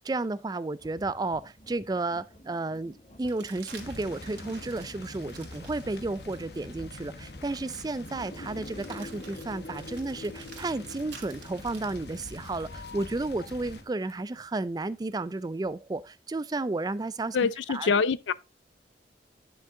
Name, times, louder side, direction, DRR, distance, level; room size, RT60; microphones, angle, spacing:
voice 1, 0.0-17.4 17.7-17.9, right 2 dB, 20° right, 0.3 m, -32 dB
sound 1, 0.8-15.1, equal, 40° left, 1.6 m, -56 dB
sound 2, 3.2-6.6 7.2-7.3 8.6-12.7 14.8-15.7, right 6 dB, 80° right, 2.4 m, -51 dB
sound 3, 3.7-13.8, left 2 dB, 60° left, 1.2 m, -43 dB
voice 2, 17.3-18.3, left 5 dB, 85° left, 0.5 m, -25 dB
10.0 x 6.3 x 3.7 m
head